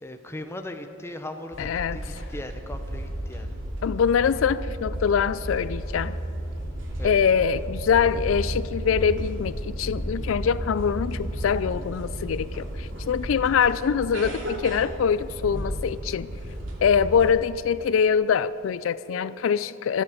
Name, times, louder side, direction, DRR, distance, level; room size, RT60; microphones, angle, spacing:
voice 1, 0.0-3.6 7.0-7.2, left 1 dB, 15° left, 6 dB, 0.8 m, -38 dB
sound 1, 1.5-17.3, right 1 dB, 80° right, 2.5 m, -33 dB
voice 2, 1.6-2.2 3.8-6.2 7.0-16.3 16.8-20.0, left 7 dB, 85° left, 16 dB, 0.4 m, -24 dB
24.0 x 8.5 x 5.0 m, 2.7 s
head